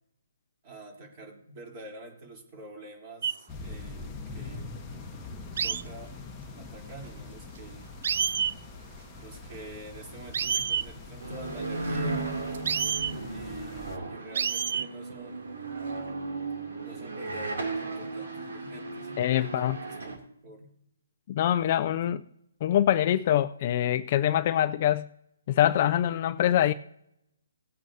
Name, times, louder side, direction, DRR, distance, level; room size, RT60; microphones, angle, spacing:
voice 1, 0.6-4.8 5.6-6.1 6.6-7.9 9.2-12.3 13.2-15.7 16.8-20.7 21.5-22.2, right 1 dB, 30° right, 0 dB, 3.4 m, -46 dB
sound 1, 3.2-3.4 5.6-5.8 7.6-7.7 8.0-8.6 10.3-10.9 12.5-13.1 14.3-14.9 15.8-16.1, right 7 dB, 55° right, 0.3 m, -28 dB
sound 2, 3.5-14.0, left 4 dB, 15° left, 1.0 m, -44 dB
sound 3, 11.2-20.2, right 3 dB, 75° right, 2.7 m, -35 dB
voice 2, 19.2-19.8 21.3-22.2 22.6-25.1 25.5-26.7, left 11 dB, 35° left, 11 dB, 0.4 m, -24 dB
18.5 x 8.8 x 2.7 m, 0.77 s
hypercardioid pair, 160°, 0 cm